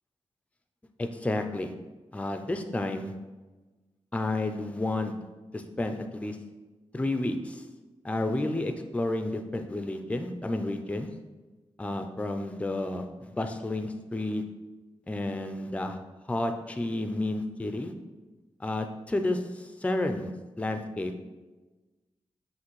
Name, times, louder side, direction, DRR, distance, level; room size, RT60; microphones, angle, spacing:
voice 1, 1.0-1.7 2.1-3.1 4.1-5.1 5.5-6.4 6.9-7.6 8.0-11.1 11.8-14.4 15.1-16.0 16.3-17.9 18.6-20.3 20.6-21.1, left 2 dB, 10° left, 6 dB, 0.4 m, -31 dB
5.8 x 2.5 x 3.1 m, 1.2 s
cardioid pair, 70°, 11 cm